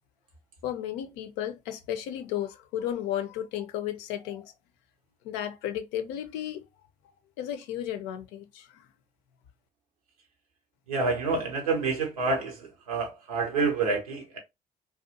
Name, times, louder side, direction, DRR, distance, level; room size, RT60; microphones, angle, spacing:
voice 1, 0.6-4.5 5.2-6.6 7.4-8.8, left 11 dB, 70° left, 0.5 m, -34 dB
voice 2, 10.9-14.4, right 4 dB, 85° right, 0.7 m, -28 dB
2.6 x 2.2 x 2.5 m
hypercardioid pair, 50°, 18 cm